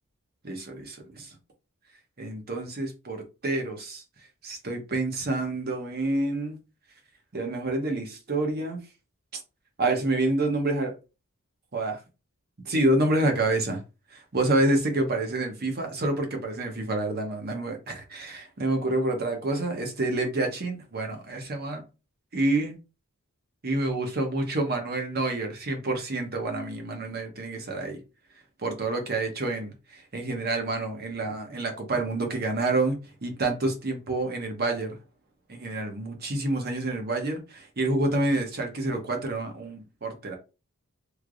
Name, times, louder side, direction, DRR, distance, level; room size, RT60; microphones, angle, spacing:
voice 1, 0.4-1.3 2.2-4.0 4.4-6.6 7.3-8.8 9.8-10.9 11.7-12.0 12.6-13.8 14.1-21.8 22.3-22.8 23.6-28.0 28.6-35.0 35.5-40.4, right 2 dB, 45° right, 0.9 m, -28 dB
3.2 x 2.8 x 2.5 m
head